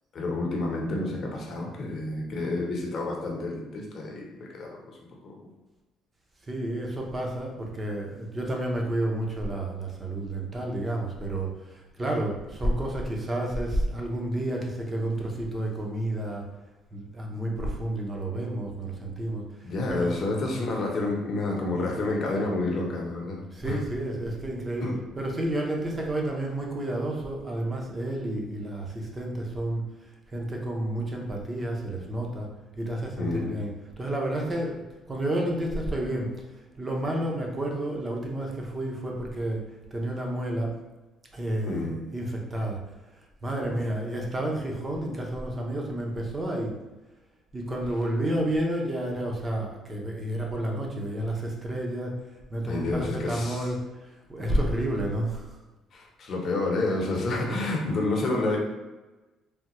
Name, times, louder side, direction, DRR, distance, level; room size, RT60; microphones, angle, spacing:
voice 1, 0.1-5.0 5.2-5.4 19.6-23.4 23.6-23.8 24.8-25.0 33.2-33.5 41.7-41.9 43.7-43.8 52.7-53.7 54.4-54.5 55.9-58.6, left 2 dB, 45° left, -1 dB, 0.7 m, -29 dB
voice 2, 6.5-16.4 16.9-20.1 23.5-24.9 25.2-29.8 30.3-32.5 32.8-33.7 34.0-34.8 35.1-36.3 36.8-39.6 39.9-40.7 41.3-42.8 43.4-46.7 47.5-52.1 52.5-55.6, right 1 dB, 20° right, 0 dB, 0.6 m, -30 dB
3.4 x 2.2 x 2.9 m, 1.1 s
cardioid pair, 125°, 0 cm